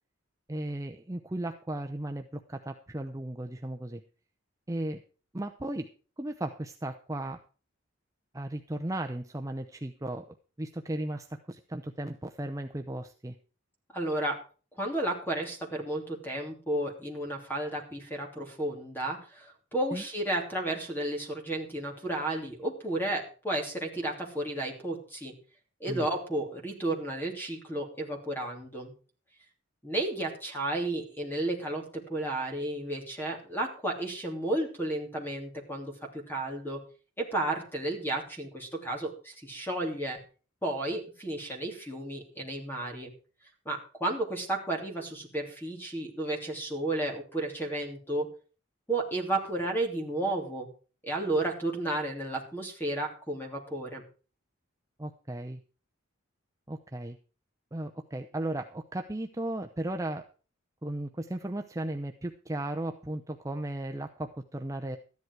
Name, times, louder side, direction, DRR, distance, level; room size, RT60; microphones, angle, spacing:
voice 1, 0.5-4.0 4.7-5.0 5.3-5.9 6.2-7.4 8.3-10.2 10.6-13.3 19.9-20.0 25.9-26.1 55.0-55.6 56.7-57.2 57.7-60.2 60.8-65.0, right 1 dB, 15° right, 5 dB, 0.6 m, -35 dB
voice 2, 13.9-14.4 14.7-25.3 25.8-28.9 29.8-36.8 37.2-40.2 40.6-43.1 43.6-48.3 48.9-50.7 51.0-54.0, right 1 dB, 10° left, 2 dB, 2.9 m, -32 dB
13.5 x 10.5 x 4.7 m, 0.38 s
head